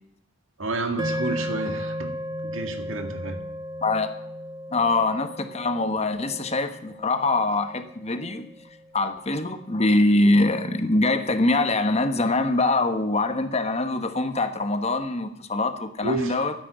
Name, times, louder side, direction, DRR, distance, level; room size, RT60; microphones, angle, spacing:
voice 1, 0.6-2.1 2.4-3.4 16.0-16.4, right 2 dB, 70° right, 7 dB, 1.9 m, -30 dB
sound 1, 1.0-9.4, equal, 20° right, 1.1 m, -35 dB
voice 2, 4.7-8.5 8.9-16.5, left 2 dB, 30° left, 8 dB, 1.2 m, -23 dB
13.0 x 10.0 x 8.1 m, 0.74 s
head